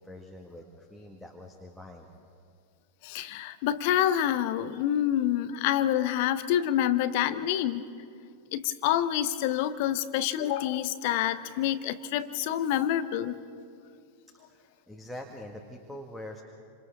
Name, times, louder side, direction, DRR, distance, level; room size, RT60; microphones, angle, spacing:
voice 1, 0.0-2.1 14.5-16.4, left 1 dB, ahead, 2 dB, 1.8 m, -44 dB
voice 2, 3.0-7.8 8.5-13.4, left 11 dB, 50° left, 13 dB, 1.0 m, -27 dB
29.0 x 26.5 x 3.8 m, 2.3 s
figure-of-eight pair, 90°, 0 cm